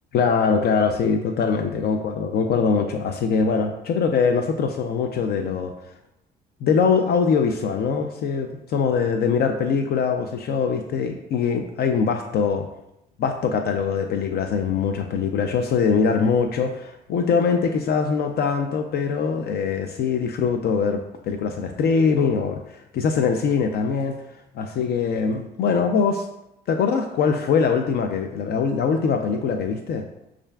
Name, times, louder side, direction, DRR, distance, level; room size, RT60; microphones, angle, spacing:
voice 1, 0.1-5.7 6.6-12.6 13.2-24.2 24.5-26.3 26.7-30.0, left 5 dB, 55° left, 6 dB, 0.4 m, -22 dB
6.2 x 2.4 x 2.2 m, 0.87 s
supercardioid pair, 75°, 19 cm